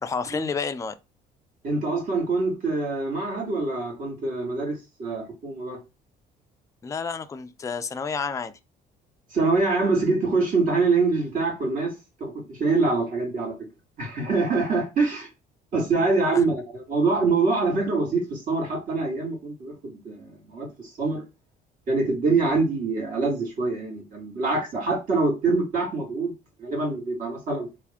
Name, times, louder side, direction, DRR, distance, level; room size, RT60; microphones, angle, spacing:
voice 1, 0.0-1.0 6.8-8.5 16.0-16.4, left 5 dB, 20° left, 0.4 m, -30 dB
voice 2, 1.6-5.8 9.3-11.9 12.2-13.5 14.0-15.3 15.7-21.2 21.9-26.3 26.6-27.7, right 3 dB, 55° right, 2.1 m, -25 dB
3.4 x 2.6 x 3.5 m
cardioid pair, 110°, 17 cm